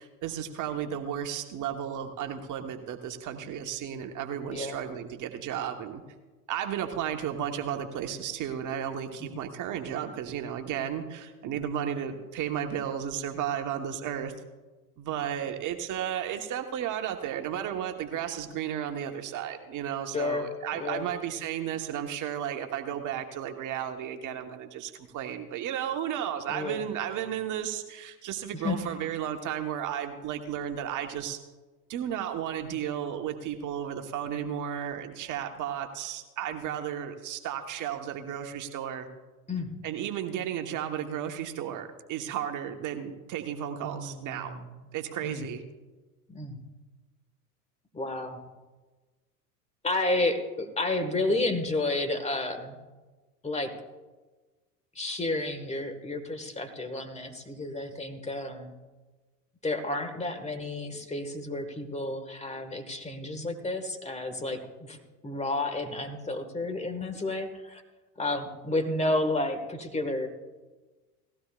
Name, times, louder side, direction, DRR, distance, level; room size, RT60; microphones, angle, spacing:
voice 1, 0.0-6.0 6.5-14.3 15.0-31.4 31.9-39.1 39.8-44.5 44.9-45.6, right 9 dB, 40° right, 5 dB, 1.3 m, -33 dB
voice 2, 20.1-20.5 20.8-21.1 26.5-26.9 28.6-28.8 39.5-39.7 43.8-44.6 45.2-45.4 46.3-46.6 47.9-48.4 49.8-52.8 53.4-53.7 55.0-58.7 59.6-65.0 65.2-67.8 68.2-70.3, left 2 dB, 15° left, 7 dB, 1.7 m, -31 dB
19.0 x 15.5 x 2.5 m, 1.3 s
hypercardioid pair, 90°, 48 cm